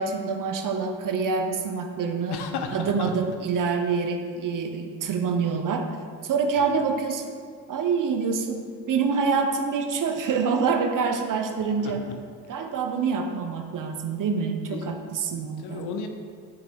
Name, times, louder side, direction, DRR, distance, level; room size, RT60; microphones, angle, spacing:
voice 1, 0.0-2.4 2.7-5.8 6.2-7.3 7.7-12.0 12.5-15.9, right 5 dB, 40° right, 5 dB, 0.8 m, -26 dB
voice 2, 2.3-3.1 6.6-6.7 14.7-14.9 15.3-16.1, left 5 dB, 55° left, 5 dB, 0.9 m, -34 dB
10.0 x 6.8 x 2.3 m, 2.1 s
figure-of-eight pair, 45°, 48 cm